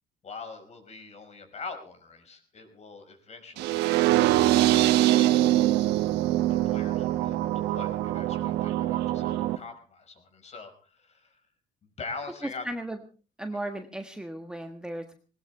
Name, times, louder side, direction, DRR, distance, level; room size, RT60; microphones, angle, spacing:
voice 1, 0.2-5.3 6.5-7.4 7.7-11.4 12.0-12.7, left 4 dB, 40° left, 6 dB, 5.2 m, -43 dB
sound 1, 3.6-9.6, right 15 dB, 90° right, 1.1 m, -23 dB
voice 2, 12.4-13.0 13.4-15.2, right 1 dB, 5° right, 6 dB, 1.5 m, -35 dB
19.0 x 19.0 x 3.4 m, 0.36 s
cardioid pair, 110°, 17 cm